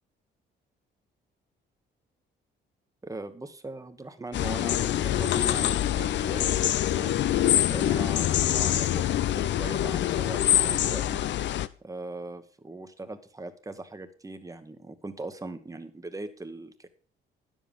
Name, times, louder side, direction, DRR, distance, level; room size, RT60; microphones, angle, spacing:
voice 1, 3.0-6.5 6.9-7.2 7.7-11.2 11.8-16.9, right 2 dB, 15° right, 9 dB, 1.3 m, -40 dB
sound 1, 4.3-11.7, left 12 dB, 65° left, 0.6 m, -25 dB
9.9 x 7.4 x 5.4 m, 0.42 s
cardioid pair, 90°, 20 cm